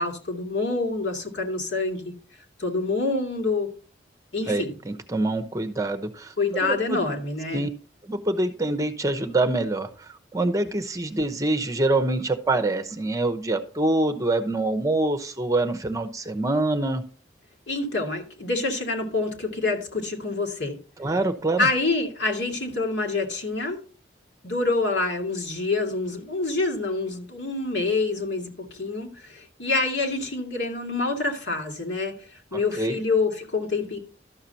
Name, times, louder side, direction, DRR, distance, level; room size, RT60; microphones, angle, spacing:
voice 1, 0.0-2.1 2.6-3.7 4.3-4.8 6.4-7.7 17.7-20.8 21.6-23.8 24.4-32.1 32.5-34.0, left 3 dB, 80° left, 2 dB, 2.3 m, -26 dB
voice 2, 4.5-7.0 7.5-7.7 8.1-17.0 21.0-21.7 32.5-33.0, right 2 dB, 20° right, 9 dB, 0.8 m, -25 dB
12.5 x 6.6 x 2.8 m, 0.40 s
head